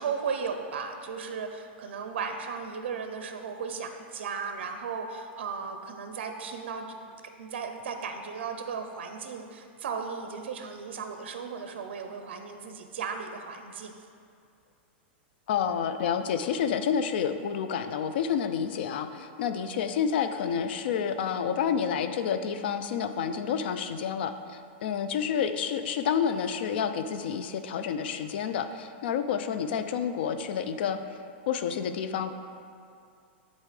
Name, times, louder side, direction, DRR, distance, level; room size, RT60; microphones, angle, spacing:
voice 1, 0.0-6.9 7.4-14.0, right 5 dB, 80° right, 5 dB, 0.6 m, -36 dB
voice 2, 15.5-31.2 31.5-32.3, left 7 dB, 65° left, 9 dB, 0.5 m, -29 dB
11.0 x 4.2 x 3.3 m, 2.4 s
supercardioid pair, 155°, 6 cm